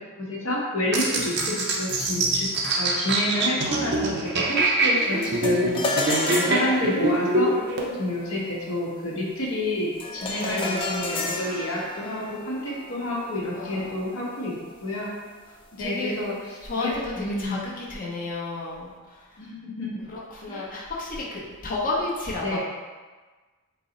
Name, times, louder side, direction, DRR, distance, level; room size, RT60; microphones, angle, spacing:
voice 1, 0.2-2.5 2.8-5.9 6.3-7.5 8.0-14.5 14.8-15.1 15.8-16.3 16.7-17.7 19.4-20.0 20.5-20.6 22.4-22.6, left 1 dB, 65° left, -4 dB, 0.9 m, -29 dB
sound 1, 0.9-7.9, right 2 dB, 50° right, 0.5 m, -24 dB
sound 2, 5.2-14.7, left 2 dB, 25° left, 0.3 m, -32 dB
voice 2, 10.3-10.9 13.4-13.9 15.8-16.2 16.6-19.4 20.1-22.6, left 2 dB, 40° left, -5 dB, 0.7 m, -32 dB
3.9 x 2.0 x 3.7 m, 1.3 s
head